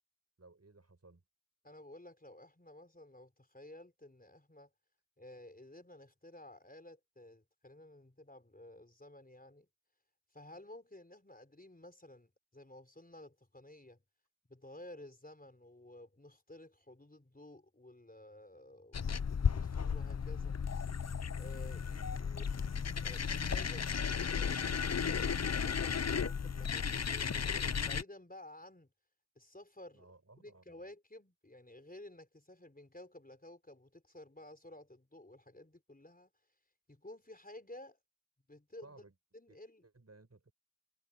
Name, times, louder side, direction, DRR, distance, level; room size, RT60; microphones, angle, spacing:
voice 1, 0.4-1.2 29.9-30.8 38.8-39.1 39.5-40.5, right 3 dB, 50° right, 6.3 m, -60 dB
voice 2, 1.6-4.7 5.2-9.7 10.3-14.0 14.5-19.0 19.5-20.6 21.4-22.7 23.0-24.6 25.0-28.9 29.4-30.1 30.4-36.3 36.9-38.0 38.5-39.0 39.3-39.8, left 1 dB, 25° left, 4.6 m, -54 dB
sound 1, 18.9-28.0, left 6 dB, 50° left, 0.7 m, -34 dB
cardioid pair, 40°, 34 cm